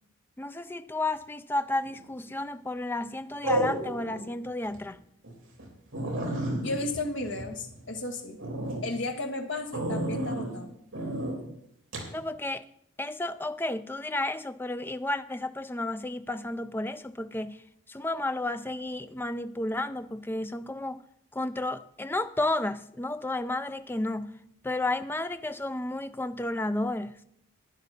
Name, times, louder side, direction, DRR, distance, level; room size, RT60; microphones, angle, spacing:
voice 1, 0.4-5.0 12.1-12.6 13.0-17.6 17.9-21.0 21.3-24.4 24.6-27.2, left 2 dB, 10° left, 0.3 m, -32 dB
sound 1, 1.8-2.2 3.4-4.2 4.7-4.8 5.2-5.3 5.6-5.7 5.9-8.0 8.4-8.8 9.7-10.5 10.9-11.3 11.9-12.1, right 1 dB, 70° right, 3.4 m, -31 dB
voice 2, 6.6-8.4 8.8-10.7, left 2 dB, 60° left, 1.5 m, -34 dB
12.0 x 10.0 x 4.2 m
head